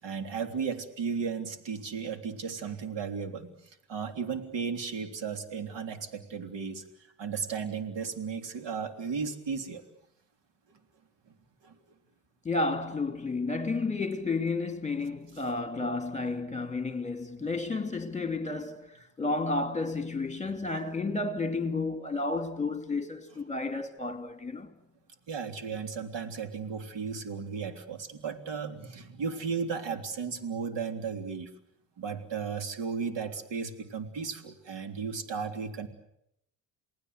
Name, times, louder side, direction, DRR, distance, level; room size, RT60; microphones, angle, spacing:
voice 1, 0.0-6.8 7.2-9.8 11.6-11.8 17.4-17.5 25.3-31.5 32.0-35.9, right 6 dB, 60° right, 3.5 m, -35 dB
voice 2, 12.4-24.7, left 3 dB, 15° left, 2.9 m, -31 dB
28.5 x 19.0 x 8.1 m
supercardioid pair, 65°, 49 cm